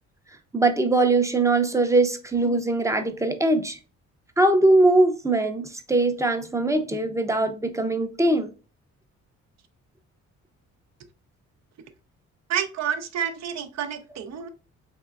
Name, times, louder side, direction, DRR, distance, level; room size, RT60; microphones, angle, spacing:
voice 1, 0.5-3.8 4.4-8.5, right 2 dB, 10° right, 7 dB, 0.6 m, -21 dB
voice 2, 12.5-14.5, right 8 dB, 60° right, 8 dB, 0.6 m, -29 dB
3.7 x 3.0 x 2.3 m, 0.34 s
cardioid pair, 90°, 30 cm